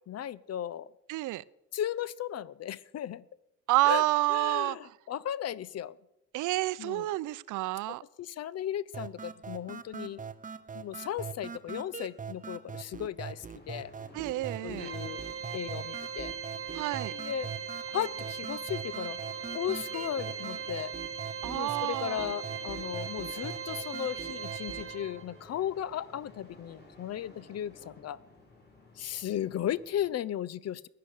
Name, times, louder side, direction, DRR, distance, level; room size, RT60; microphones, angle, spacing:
voice 1, 0.1-0.9 1.7-3.2 3.8-4.0 4.3-5.9 6.8-7.1 8.2-10.2 10.7-13.9 14.6-15.2 15.5-16.3 17.1-17.5 17.9-19.2 19.5-20.9 21.5-28.2 29.0-30.9, left 11 dB, 55° left, 0.6 m, -36 dB
voice 2, 1.1-1.4 3.7-4.8 6.3-8.0 14.1-14.9 16.7-17.1 21.4-22.3, right 18 dB, 85° right, 0.5 m, -29 dB
sound 1, 8.9-24.9, right 6 dB, 25° right, 0.8 m, -42 dB
sound 2, 13.3-30.1, left 2 dB, 35° left, 4.9 m, -55 dB
Organ, 14.8-25.4, right 7 dB, 45° right, 1.9 m, -39 dB
15.5 x 10.5 x 6.6 m
cardioid pair, 90°, 30 cm